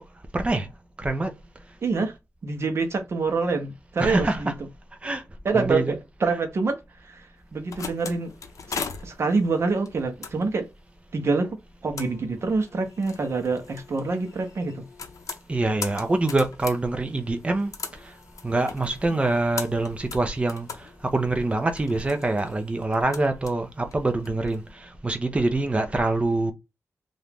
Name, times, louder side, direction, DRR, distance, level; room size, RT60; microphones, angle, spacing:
voice 1, 0.3-0.7 1.0-1.3 4.0-4.5 5.0-5.2 5.5-6.0 15.5-17.7 18.4-26.5, right 2 dB, 20° right, 0.6 m, -25 dB
voice 2, 1.8-2.1 2.4-4.5 5.4-7.3 7.5-8.3 8.7-10.7 11.1-11.5 11.8-14.8, right 4 dB, 50° right, 0.8 m, -26 dB
sound 1, 7.4-24.6, left 5 dB, 70° left, 0.6 m, -40 dB
2.9 x 2.5 x 3.5 m
wide cardioid pair, 175°, 6 cm